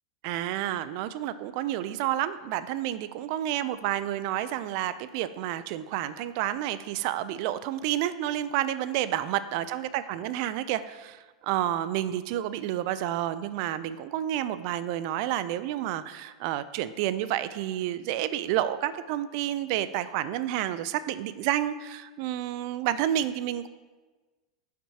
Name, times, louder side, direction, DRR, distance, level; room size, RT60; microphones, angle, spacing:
voice 1, 0.2-23.7, right 12 dB, 55° right, 13 dB, 0.4 m, -30 dB
14.0 x 5.9 x 2.8 m, 1.3 s
hypercardioid pair, 95°, 3 cm